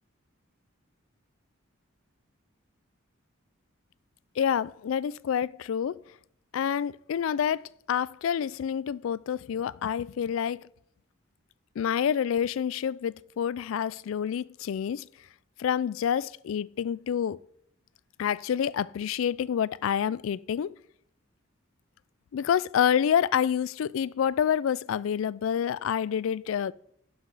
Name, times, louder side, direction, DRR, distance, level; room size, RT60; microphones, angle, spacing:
voice 1, 4.4-6.0 6.5-10.6 11.8-15.1 15.6-17.4 18.2-20.8 22.3-26.7, left 8 dB, 75° left, 0.3 m, -28 dB
11.5 x 5.7 x 4.8 m
head